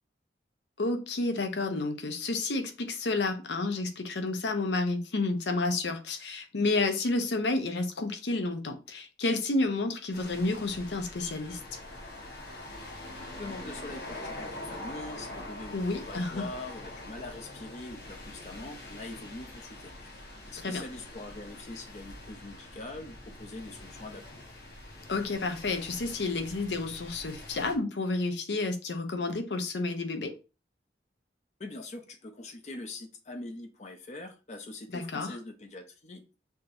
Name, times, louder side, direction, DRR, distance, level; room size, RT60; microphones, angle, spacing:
voice 1, 0.8-11.8 15.7-16.5 20.6-20.8 25.1-30.3 34.9-35.4, left 3 dB, 80° left, 0.7 m, -30 dB
sound 1, 10.1-27.7, left 1 dB, 65° left, 1.2 m, -44 dB
voice 2, 13.4-20.2 20.4-24.2 31.6-36.4, left 2 dB, 40° left, 0.5 m, -43 dB
5.7 x 2.9 x 2.6 m
head